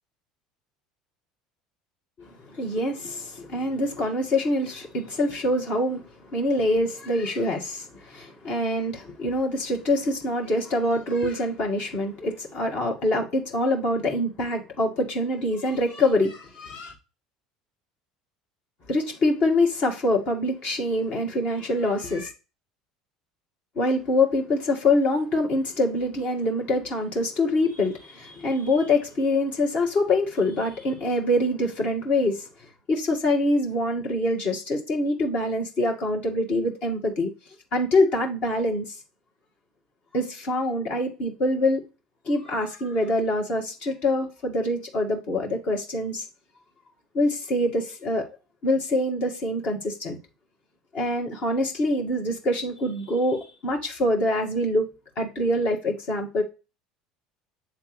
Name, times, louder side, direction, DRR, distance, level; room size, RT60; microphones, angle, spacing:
voice 1, 2.2-6.0 6.3-16.9 18.9-22.3 23.8-32.5 32.9-37.3 37.7-38.8 40.1-41.8 42.3-46.3 47.1-48.3 48.6-50.2 50.9-54.9 55.2-56.4, left 1 dB, 50° left, 2.0 m, -25 dB
7.7 x 3.5 x 4.9 m
figure-of-eight pair, 65°, 3 cm